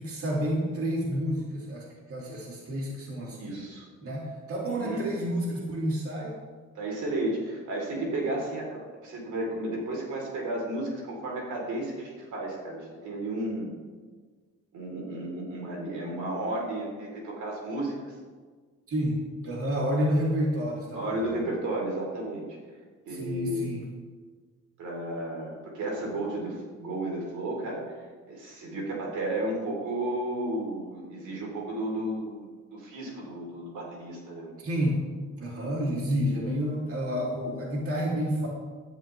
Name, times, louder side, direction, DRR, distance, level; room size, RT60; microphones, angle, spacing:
voice 1, 0.0-3.6 4.0-6.4 18.9-21.4 23.1-23.9 34.6-35.0 35.4-38.5, equal, 50° right, -4 dB, 3.5 m, -30 dB
voice 2, 3.4-3.9 4.6-5.0 6.7-13.7 14.7-18.1 20.9-22.6 23.0-23.6 24.8-34.5, right 1 dB, 75° right, -2 dB, 4.3 m, -33 dB
15.5 x 12.0 x 3.6 m, 1.5 s
cardioid pair, 90°, 30 cm